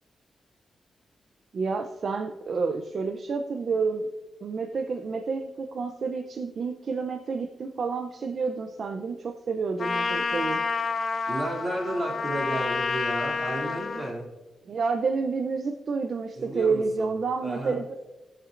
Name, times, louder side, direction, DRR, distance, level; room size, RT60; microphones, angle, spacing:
voice 1, 1.5-4.1 4.4-10.7 14.7-17.8, right 4 dB, 55° right, 6 dB, 0.6 m, -29 dB
Trumpet, 9.8-14.1, left 4 dB, 45° left, 0.7 m, -29 dB
voice 2, 11.3-14.3 16.4-17.1 17.4-18.1, right 1 dB, 35° right, -3 dB, 2.9 m, -32 dB
19.5 x 7.5 x 2.6 m, 1.2 s
wide cardioid pair, 125°, 0 cm